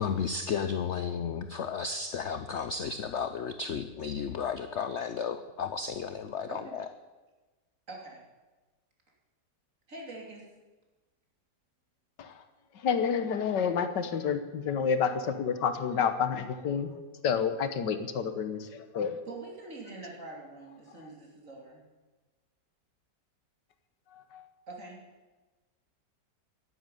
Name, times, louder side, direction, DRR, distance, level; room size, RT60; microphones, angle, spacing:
voice 1, 0.0-6.8, left 6 dB, 60° left, 10 dB, 0.7 m, -33 dB
voice 2, 6.5-6.8 7.9-8.2 9.9-10.4 19.3-21.8 24.7-25.0, right 3 dB, 45° right, -1 dB, 3.3 m, -44 dB
voice 3, 12.7-17.0 17.2-19.2 24.1-24.5, left 6 dB, 80° left, 10 dB, 1.7 m, -29 dB
11.0 x 10.5 x 9.0 m, 1.2 s
omnidirectional pair, 1.9 m